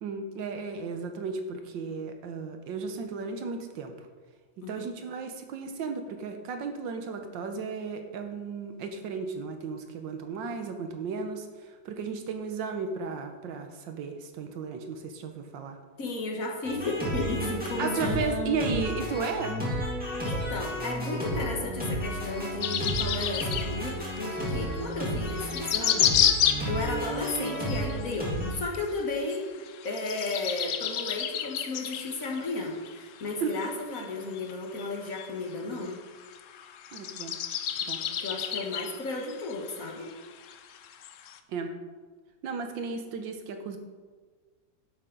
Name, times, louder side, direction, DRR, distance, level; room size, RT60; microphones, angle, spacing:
voice 1, 0.0-3.9 4.7-11.5 11.8-15.8 17.8-19.6 33.4-33.5 36.9-37.4 37.9-38.0 41.5-41.8 42.4-43.8, right 5 dB, 90° right, 6 dB, 1.7 m, -34 dB
voice 2, 16.0-18.2 20.2-26.2 26.7-29.5 29.8-36.0 37.7-40.1, left 2 dB, 50° left, 0 dB, 1.7 m, -34 dB
sound 1, 16.6-28.5, equal, 5° right, 2.7 m, -32 dB
sound 2, 22.6-41.4, left 9 dB, 75° left, 0.7 m, -32 dB
10.5 x 7.8 x 3.9 m, 1.4 s
omnidirectional pair, 1.9 m